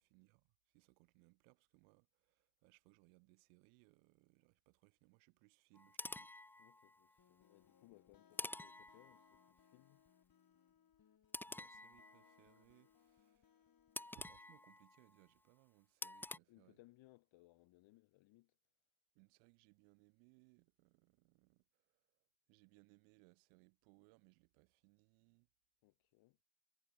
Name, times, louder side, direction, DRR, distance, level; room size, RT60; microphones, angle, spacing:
voice 1, 0.0-6.3 11.5-16.8 19.1-22.2 22.5-25.5, right 40 dB or more, 90° right, 4.6 m, -70 dB
sound 1, 5.7-7.2 8.4-9.6 11.3-12.6 14.0-15.3 16.0-16.4, left 2 dB, 5° left, 0.4 m, -49 dB
voice 2, 6.6-10.0 16.3-18.6 25.8-26.4, left 19 dB, 75° left, 2.3 m, -67 dB
sound 2, 7.2-14.7, left 8 dB, 50° left, 5.3 m, -72 dB
supercardioid pair, 70°, 46 cm